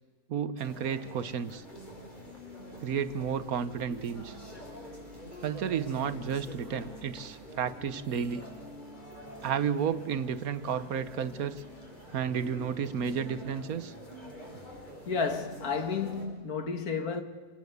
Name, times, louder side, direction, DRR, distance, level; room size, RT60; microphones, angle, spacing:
voice 1, 0.3-1.6 2.8-4.4 5.4-8.5 9.4-11.6 12.1-13.9, right 7 dB, 70° right, 1.4 m, -32 dB
sound 1, 0.6-16.2, equal, 30° left, 5.0 m, -46 dB
voice 2, 15.1-17.2, left 5 dB, 75° left, 2.1 m, -31 dB
27.0 x 19.0 x 8.2 m
omnidirectional pair, 1.6 m